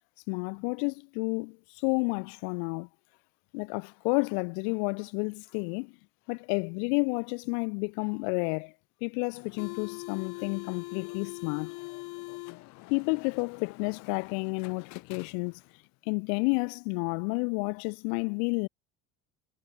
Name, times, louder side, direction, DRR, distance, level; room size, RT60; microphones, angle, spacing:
voice 1, 0.3-2.9 3.5-5.9 6.3-8.7 9.0-11.8 12.9-15.6 16.1-18.7, left 40 dB or more, 90° left, 2.3 m, -30 dB
sound 1, 9.3-15.8, left 23 dB, 65° left, 6.7 m, -43 dB
cardioid pair, 165°, 30 cm